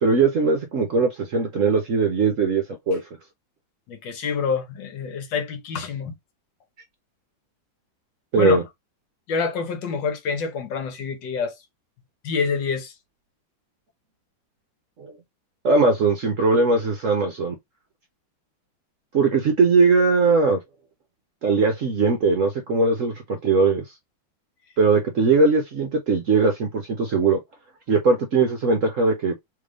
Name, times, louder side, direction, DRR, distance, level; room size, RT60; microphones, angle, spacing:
voice 1, 0.0-3.0 8.3-8.6 15.0-15.1 15.6-17.6 19.1-20.6 21.4-23.8 24.8-27.4 27.9-29.3, right 4 dB, 60° right, 0.9 m, -20 dB
voice 2, 3.9-6.1 8.4-8.6 9.3-11.6 12.2-12.9, left 5 dB, 70° left, 1.6 m, -27 dB
3.5 x 3.4 x 3.7 m
omnidirectional pair, 2.1 m